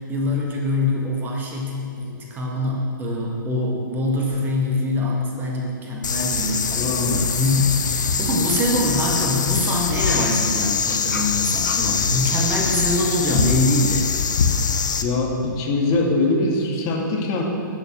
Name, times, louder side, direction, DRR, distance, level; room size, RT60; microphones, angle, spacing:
voice 1, 0.0-14.1, left 1 dB, 15° right, -1 dB, 1.7 m, -24 dB
sound 1, 6.0-15.0, left 6 dB, 60° left, 0.9 m, -23 dB
voice 2, 6.8-7.2 15.0-17.4, left 2 dB, 30° left, -1 dB, 2.1 m, -22 dB
12.0 x 7.0 x 8.9 m, 2.4 s
figure-of-eight pair, 115°, 11 cm